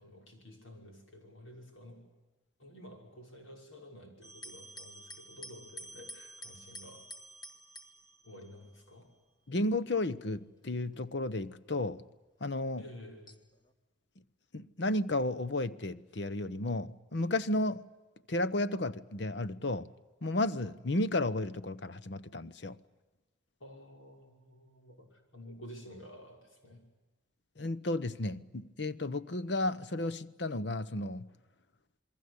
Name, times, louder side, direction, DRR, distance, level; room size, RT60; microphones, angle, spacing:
voice 1, 0.0-2.1 2.6-7.1 8.2-9.1 12.8-13.4 23.6-26.9, equal, 85° left, 5.9 m, -51 dB
sound 1, 4.2-8.9 9.8-10.3 10.9-11.0 13.3-13.7, equal, 20° left, 1.6 m, -49 dB
voice 2, 9.5-12.1 12.4-12.8 14.5-17.9 18.3-19.9 20.2-22.8 27.6-31.3, left 2 dB, 60° left, 0.9 m, -33 dB
28.5 x 22.0 x 8.2 m
head